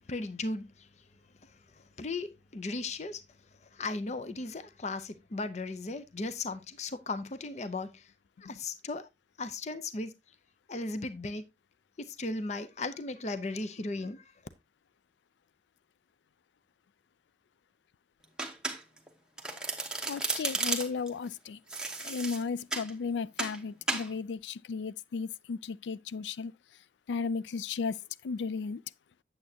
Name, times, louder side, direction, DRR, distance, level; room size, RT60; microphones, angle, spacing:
voice 1, 0.1-1.1 1.4-8.1 8.4-9.1 9.4-10.1 10.7-11.4 12.0-14.4, left 2 dB, 40° left, 0.6 m, -37 dB
Domestic sounds home sounds, 18.4-19.1 19.4-21.1 21.7-22.9 23.4-23.6 23.9-24.1, right 3 dB, 5° right, 1.1 m, -33 dB
voice 2, 20.1-21.6 22.0-26.5 27.1-28.0 28.2-28.8, left 5 dB, 85° left, 0.4 m, -35 dB
8.5 x 7.8 x 2.7 m
head